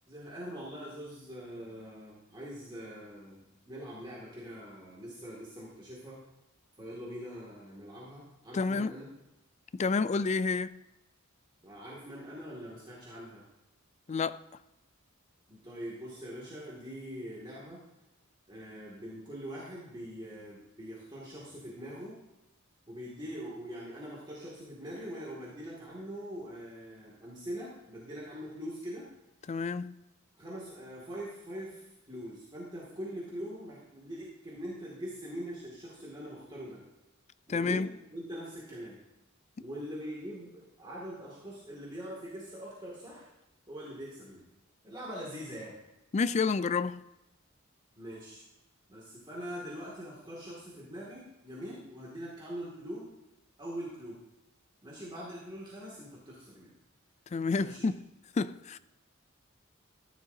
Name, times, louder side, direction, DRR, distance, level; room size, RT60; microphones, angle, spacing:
voice 1, 0.1-6.2 6.8-9.1 11.6-13.4 15.5-17.8 18.5-22.2 22.9-29.1 30.4-36.8 37.5-39.0 39.6-43.3 43.7-44.4 44.8-45.7 47.9-48.4 48.9-53.1 53.6-54.2 54.8-56.8 57.6-57.9, equal, 20° right, 2.3 m, -43 dB
voice 2, 8.5-8.9 9.7-10.8 14.1-14.4 29.5-29.9 37.5-37.9 46.1-47.1 57.3-58.0 58.4-58.8, left 4 dB, 35° left, 0.4 m, -29 dB
14.5 x 11.5 x 2.8 m
head